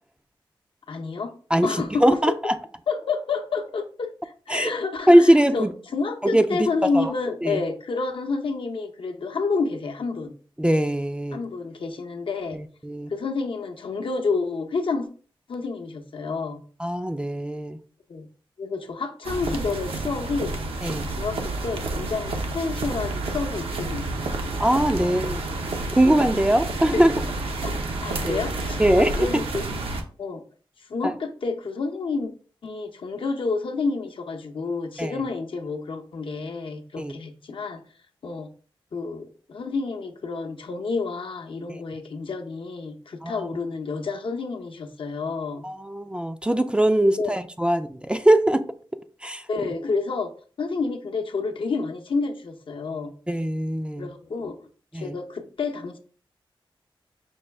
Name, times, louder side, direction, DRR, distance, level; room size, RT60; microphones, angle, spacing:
voice 1, 0.9-1.3 1.6-2.3 2.9-10.3 11.3-12.6 13.1-15.1 15.5-16.6 18.1-18.3 18.6-20.5 21.1-24.3 25.0-25.2 26.9-27.0 27.6-27.8 28.0-29.7 30.2-30.4 30.9-32.3 32.6-37.8 38.2-38.5 38.9-45.7 47.0-47.3 49.5-50.3 50.6-53.1 54.0-54.7 54.9-56.0, left 4 dB, 65° left, 0.7 m, -29 dB
voice 2, 1.5-2.5 4.5-4.7 5.1-5.7 6.2-6.7 6.9-7.1 7.4-7.6 10.6-11.4 12.5-13.1 16.8-17.8 20.8-21.1 24.6-25.4 25.9-27.2 28.2-28.4 28.8-29.3 31.0-31.1 35.0-35.2 37.0-37.1 41.7-41.8 43.2-43.5 45.6-48.6 49.2-49.4 53.3-54.1 54.9-55.2, right 1 dB, 10° right, 0.3 m, -21 dB
sound 1, 19.2-30.0, right 2 dB, 80° right, 0.7 m, -30 dB
5.4 x 2.3 x 3.3 m
cardioid pair, 70°, 9 cm